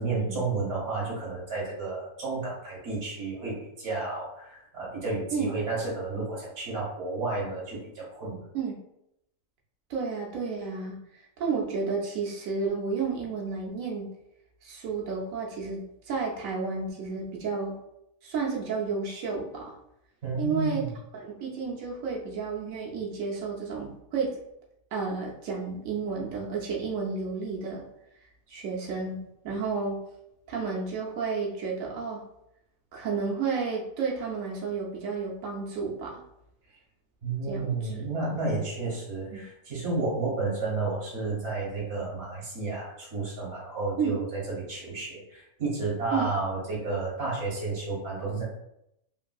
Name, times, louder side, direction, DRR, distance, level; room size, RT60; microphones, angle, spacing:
voice 1, 0.0-8.4 20.2-20.9 37.2-48.4, right 3 dB, 60° right, -6 dB, 1.3 m, -31 dB
voice 2, 9.9-14.1 14.6-17.8 18.2-19.7 20.4-20.8 21.1-24.4 24.9-27.8 28.5-30.0 30.5-32.2 32.9-36.2 37.5-37.9 39.3-39.4 44.0-44.2 46.1-46.3, right 5 dB, 85° right, -2 dB, 1.0 m, -31 dB
3.2 x 2.5 x 2.3 m, 0.80 s
omnidirectional pair, 1.4 m